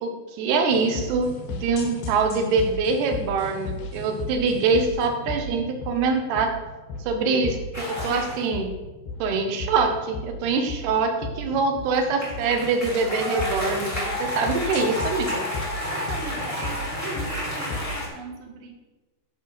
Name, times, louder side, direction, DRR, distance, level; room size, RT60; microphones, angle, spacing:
voice 1, 0.0-6.5 7.1-8.7 9.2-15.5, right 4 dB, 85° right, 5 dB, 3.2 m, -24 dB
sound 1, 0.7-18.0, left 2 dB, 75° left, 3.2 m, -35 dB
sound 2, 7.7-8.5 11.8-18.1, left 1 dB, 5° left, 1.2 m, -31 dB
voice 2, 15.8-18.7, right 3 dB, 60° right, 1 dB, 1.4 m, -38 dB
11.0 x 6.4 x 5.1 m, 1.2 s
omnidirectional pair, 4.6 m